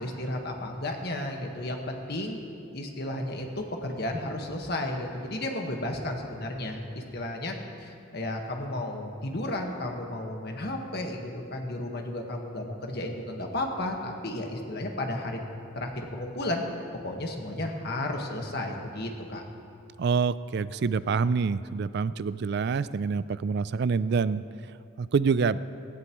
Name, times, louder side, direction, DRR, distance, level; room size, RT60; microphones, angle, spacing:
voice 1, 0.0-2.4 2.7-15.4 15.7-16.6 16.9-19.4, left 1 dB, 55° left, 2 dB, 1.5 m, -33 dB
voice 2, 20.0-24.4 25.0-25.6, right 5 dB, 55° right, 16 dB, 0.4 m, -26 dB
17.0 x 16.5 x 3.1 m, 2.5 s
head